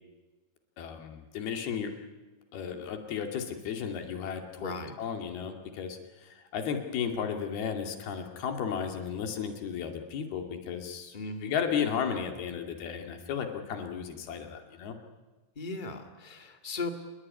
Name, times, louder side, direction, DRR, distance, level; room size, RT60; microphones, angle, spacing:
voice 1, 0.8-1.9 2.5-4.7 5.0-11.2 11.4-15.0, left 7 dB, 75° left, 5 dB, 4.3 m, -34 dB
voice 2, 4.6-4.9 11.1-11.6 15.5-16.9, left 3 dB, 20° left, 5 dB, 1.5 m, -37 dB
27.5 x 21.5 x 9.7 m, 1.2 s
omnidirectional pair, 4.6 m